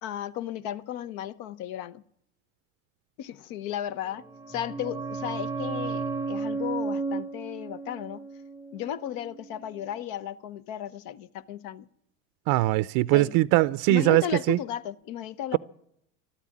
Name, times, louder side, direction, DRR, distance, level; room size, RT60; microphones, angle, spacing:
voice 1, 0.0-2.0 3.2-8.2 8.7-11.9 13.1-13.3 13.9-15.6, left 10 dB, 65° left, 0.9 m, -35 dB
sound 1, 4.1-9.6 9.8-9.9, right 4 dB, 5° right, 0.5 m, -34 dB
voice 2, 12.5-14.6, right 19 dB, 60° right, 0.5 m, -21 dB
13.5 x 12.5 x 8.5 m
supercardioid pair, 100°, 38 cm